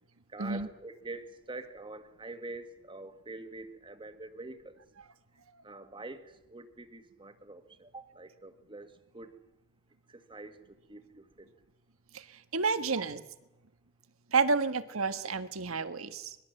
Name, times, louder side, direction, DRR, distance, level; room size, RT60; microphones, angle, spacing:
voice 1, 0.3-4.8 5.6-9.4 10.1-11.5 12.9-13.0, right 2 dB, 25° right, 8 dB, 1.8 m, -45 dB
voice 2, 12.1-13.2 14.3-16.4, right 4 dB, 80° right, 11 dB, 1.5 m, -30 dB
25.5 x 21.0 x 7.8 m, 0.92 s
head